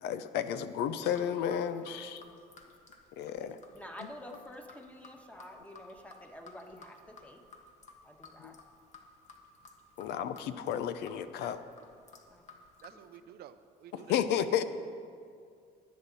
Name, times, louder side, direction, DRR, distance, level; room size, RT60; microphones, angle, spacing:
voice 1, 0.0-2.2 3.2-3.6 8.4-8.5 10.0-11.6 13.9-14.6, left 9 dB, 80° left, 11 dB, 0.7 m, -32 dB
sound 1, 0.9-12.9, left 4 dB, 45° left, 1.5 m, -55 dB
voice 2, 3.7-7.4 8.0-8.6 12.3-12.4 12.9-13.0, equal, 10° left, 2 dB, 1.5 m, -49 dB
voice 3, 12.8-14.6, right 10 dB, 70° right, 11 dB, 0.6 m, -51 dB
21.5 x 8.4 x 4.2 m, 2.3 s
cardioid pair, 110°, 17 cm